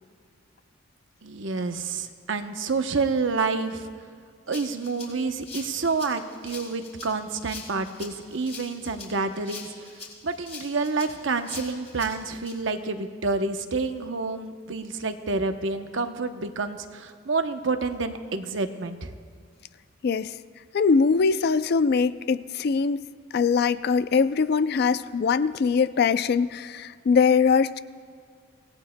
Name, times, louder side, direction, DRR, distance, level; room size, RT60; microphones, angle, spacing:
voice 1, 1.2-3.9 4.5-19.1, right 4 dB, 65° right, 7 dB, 0.8 m, -28 dB
Rattle (instrument), 4.5-12.5, left 5 dB, 35° left, 3.7 m, -42 dB
voice 2, 20.0-20.3 20.7-23.1 23.3-27.8, left 5 dB, 50° left, 15 dB, 0.3 m, -22 dB
25.5 x 18.0 x 2.2 m, 2.1 s
head